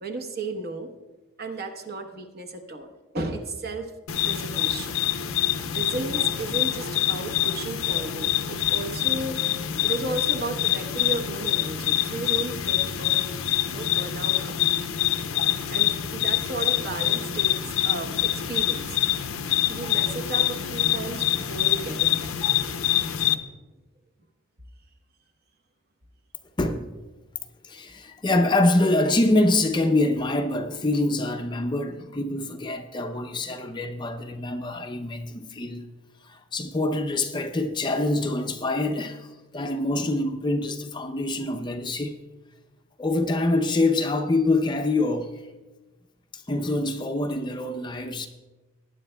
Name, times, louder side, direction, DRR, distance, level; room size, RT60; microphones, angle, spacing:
voice 1, 0.0-0.9 1.4-3.9 4.2-5.0 5.7-13.2 13.5-15.0 15.3-15.4 15.7-19.0 19.7-22.4, right 3 dB, 45° right, 1.0 m, -34 dB
sound 1, 4.1-23.3, left 12 dB, 80° left, 0.6 m, -25 dB
voice 2, 26.6-26.9 27.6-35.9 36.2-42.2 43.0-45.4 46.3-48.3, left 2 dB, 20° left, 0.5 m, -25 dB
18.5 x 9.8 x 2.2 m
head